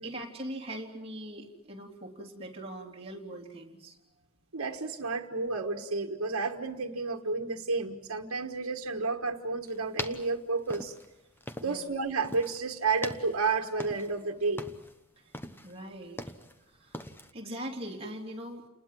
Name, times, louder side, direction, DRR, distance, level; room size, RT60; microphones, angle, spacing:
voice 1, 0.0-4.0 11.6-11.8 15.2-15.3 15.6-16.2 16.7-17.1 17.3-18.6, right 1 dB, 25° right, 0 dB, 3.5 m, -41 dB
voice 2, 4.5-10.9 11.6-14.6, right 4 dB, 75° right, 1 dB, 1.6 m, -31 dB
sound 1, 9.7-11.9 12.2-12.6 12.9-14.2 14.5-15.0 15.3-16.6 16.9-17.3, left 1 dB, 10° left, 1.1 m, -41 dB
29.5 x 20.5 x 7.6 m, 0.94 s
head